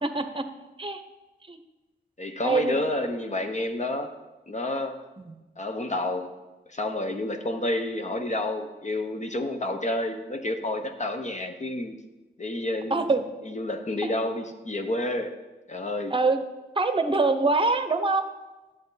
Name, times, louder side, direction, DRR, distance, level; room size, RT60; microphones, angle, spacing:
voice 1, 0.0-0.4 0.8-1.0 1.5-1.6 2.4-2.8 12.9-13.2 16.1-16.4 16.8-18.3, right 3 dB, 30° right, 9 dB, 0.9 m, -24 dB
voice 2, 2.2-4.1 4.5-5.0 5.6-6.3 6.7-12.0 12.4-13.1 13.4-15.4 15.7-16.2, left 1 dB, 40° left, 5 dB, 1.0 m, -29 dB
11.5 x 7.5 x 4.0 m, 1.1 s
wide cardioid pair, 85°, 19 cm